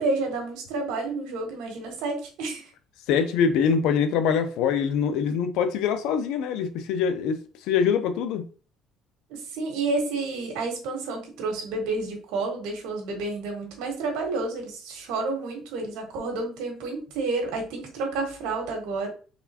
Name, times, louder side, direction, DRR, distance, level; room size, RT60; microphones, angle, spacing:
voice 1, 0.0-2.6 9.3-19.1, right 3 dB, 90° right, 1.5 m, -30 dB
voice 2, 3.1-7.4 7.7-8.4, left 7 dB, 80° left, 0.6 m, -24 dB
4.1 x 3.3 x 2.8 m
cardioid pair, 115°, 0 cm